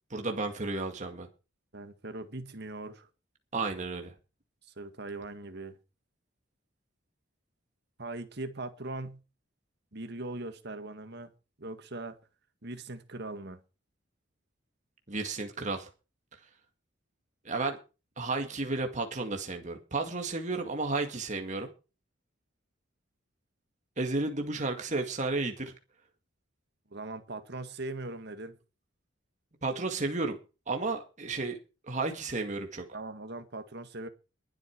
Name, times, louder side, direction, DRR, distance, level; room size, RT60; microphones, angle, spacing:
voice 1, 0.1-1.3 3.5-4.1 15.1-15.9 16.3-16.5 17.4-17.8 18.2-21.7 24.0-25.7 29.6-30.4 30.7-31.6 31.8-32.9, right 3 dB, 40° right, 2.0 m, -32 dB
voice 2, 1.7-3.1 4.8-5.8 8.0-9.2 9.9-11.3 11.6-12.2 12.6-13.6 26.9-28.5 32.9-34.1, right 2 dB, 55° right, 1.8 m, -40 dB
22.0 x 8.3 x 4.6 m
head